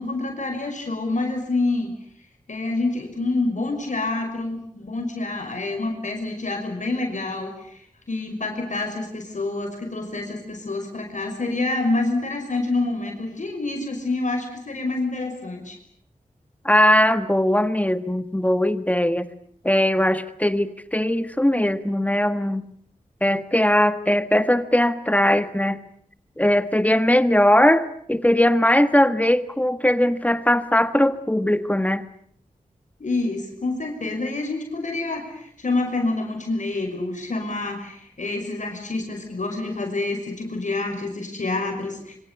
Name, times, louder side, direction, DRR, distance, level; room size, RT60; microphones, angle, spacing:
voice 1, 0.0-1.9 2.5-7.8 8.1-15.8 33.0-42.2, left 2 dB, 60° left, 3 dB, 5.8 m, -27 dB
voice 2, 16.6-19.3 19.6-22.6 23.2-25.8 26.4-32.1, left 1 dB, 10° left, 11 dB, 1.6 m, -20 dB
26.5 x 25.0 x 8.4 m, 0.64 s
wide cardioid pair, 85°, 14 cm